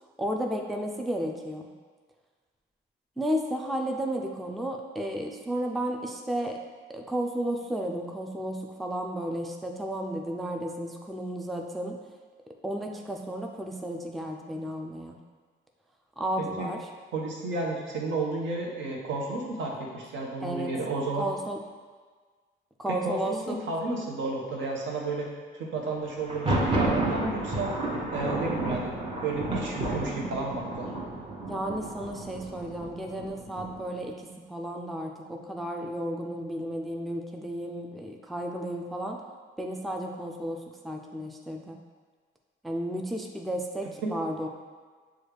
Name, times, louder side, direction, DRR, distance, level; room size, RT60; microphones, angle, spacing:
voice 1, 0.2-1.7 3.2-6.6 6.9-12.0 12.6-15.2 16.2-16.8 20.4-20.7 21.2-21.6 22.8-23.6 31.5-39.2 39.6-41.8 42.6-44.5, right 1 dB, ahead, 2 dB, 0.4 m, -33 dB
voice 2, 16.4-16.7 17.1-21.3 22.9-25.3 25.5-27.7 28.1-30.9 44.0-44.1, right 3 dB, 70° right, -1 dB, 0.9 m, -32 dB
Thunder, 26.2-34.0, right 2 dB, 30° right, 1.1 m, -31 dB
6.2 x 2.3 x 3.3 m, 1.5 s
cardioid pair, 90°, 20 cm